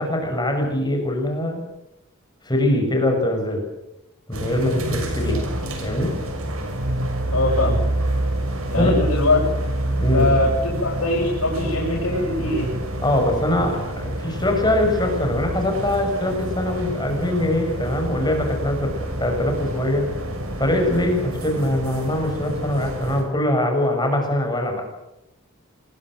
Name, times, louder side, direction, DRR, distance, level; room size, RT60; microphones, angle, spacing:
voice 1, 0.0-1.7 2.4-3.6 4.3-5.5 5.8-6.1 8.8-8.9 10.0-10.3 13.0-20.0 20.6-24.8, left 1 dB, 20° left, 3 dB, 6.5 m, -22 dB
sound 1, 4.3-23.2, right 1 dB, 70° right, 6.4 m, -27 dB
voice 2, 7.3-7.8 8.7-9.4 10.1-12.7, left 2 dB, 85° left, -5 dB, 7.8 m, -22 dB
25.5 x 21.5 x 7.9 m, 0.87 s
head